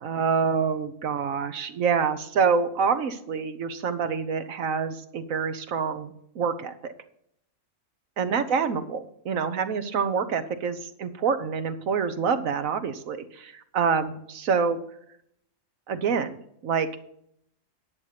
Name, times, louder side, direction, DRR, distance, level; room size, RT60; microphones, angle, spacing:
voice 1, 0.0-6.9 8.2-14.8 15.9-16.9, right 6 dB, 85° right, 10 dB, 1.4 m, -26 dB
10.5 x 7.6 x 5.9 m, 0.71 s
omnidirectional pair, 1.4 m